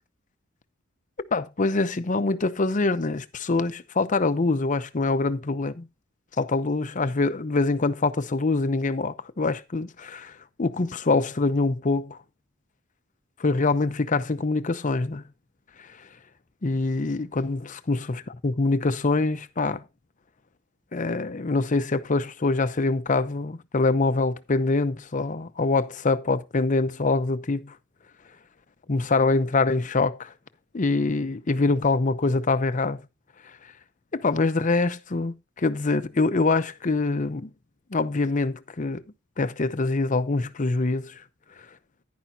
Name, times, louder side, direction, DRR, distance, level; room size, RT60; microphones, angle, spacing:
voice 1, 1.3-5.9 6.4-12.2 13.4-15.2 16.6-19.8 20.9-27.7 28.9-30.3 30.7-33.0 34.1-37.5 37.9-39.0 39.4-41.2, left 3 dB, 40° left, 0.7 m, -24 dB
10.5 x 10.5 x 2.7 m
head